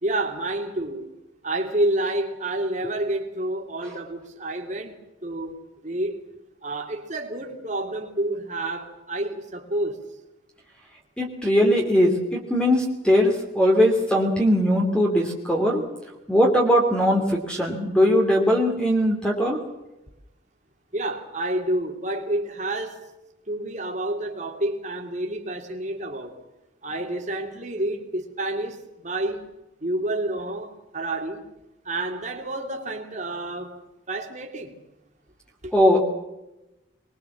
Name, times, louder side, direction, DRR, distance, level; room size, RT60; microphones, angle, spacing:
voice 1, 0.0-1.2 1.4-4.9 5.2-5.6 5.8-6.2 6.6-10.0 20.9-23.0 23.5-26.3 26.8-29.5 29.8-31.4 31.8-33.8 34.1-34.7 35.6-35.7, right 1 dB, 40° right, 3.1 m, -29 dB
voice 2, 11.2-15.8 16.3-19.6 35.7-36.0, equal, 5° left, 2.9 m, -20 dB
23.0 x 22.0 x 7.4 m
head